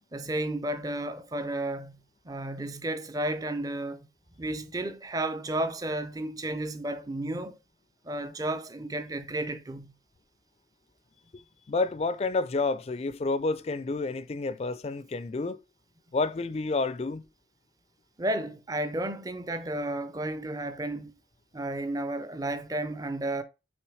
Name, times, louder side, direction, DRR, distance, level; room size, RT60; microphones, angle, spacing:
voice 1, 0.1-2.0 2.2-4.1 4.4-7.6 8.0-9.9 18.2-21.1 21.5-23.4, right 1 dB, 20° right, 0.5 m, -32 dB
voice 2, 11.7-15.6 16.1-17.2, left 3 dB, 35° left, 0.3 m, -29 dB
6.1 x 3.4 x 4.8 m
head